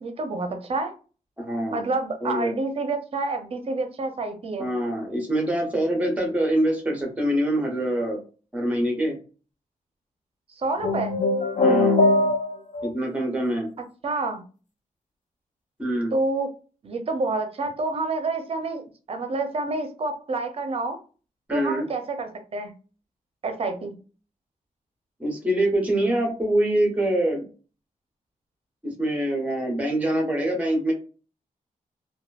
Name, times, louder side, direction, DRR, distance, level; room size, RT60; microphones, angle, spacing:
voice 1, 0.0-0.9 1.7-4.7 10.6-11.2 14.0-14.4 16.1-16.5 16.8-18.8 19.1-21.0 21.5-22.7 23.4-23.9, right 3 dB, 45° right, 5 dB, 0.6 m, -28 dB
voice 2, 1.4-1.9 2.2-2.6 4.6-8.2 8.5-9.2 11.6-12.0 12.8-13.7 15.8-16.1 21.5-21.9 25.2-27.5 28.8-30.9, right 1 dB, 10° right, 2 dB, 0.9 m, -24 dB
sound 1, 10.8-12.9, left 2 dB, 65° left, 0.6 m, -21 dB
2.9 x 2.2 x 2.4 m, 0.36 s
wide cardioid pair, 150°, 14 cm